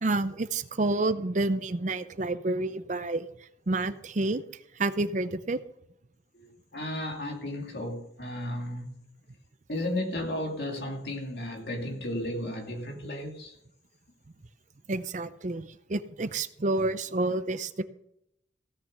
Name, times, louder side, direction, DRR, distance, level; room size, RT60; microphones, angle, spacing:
voice 1, 0.0-3.3 3.7-4.4 4.8-5.6 14.9-17.8, right 2 dB, 40° right, 0.6 m, -29 dB
voice 2, 6.3-9.0 9.7-13.5, left 1 dB, 60° left, 2.8 m, -34 dB
16.5 x 6.7 x 6.8 m
head